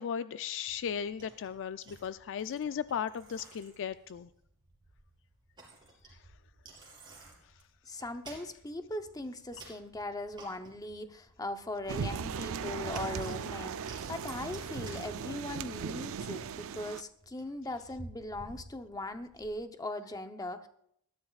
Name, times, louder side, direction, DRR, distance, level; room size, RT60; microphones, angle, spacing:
voice 1, 0.0-4.3, left 8 dB, 60° left, 14 dB, 0.4 m, -36 dB
Bicycle, 0.7-19.5, right 2 dB, 20° right, 3.7 m, -55 dB
voice 2, 7.8-20.7, left 1 dB, 15° left, 8 dB, 0.8 m, -40 dB
sound 1, 11.9-17.0, right 6 dB, 65° right, 0.4 m, -38 dB
20.0 x 13.0 x 2.4 m, 0.72 s
head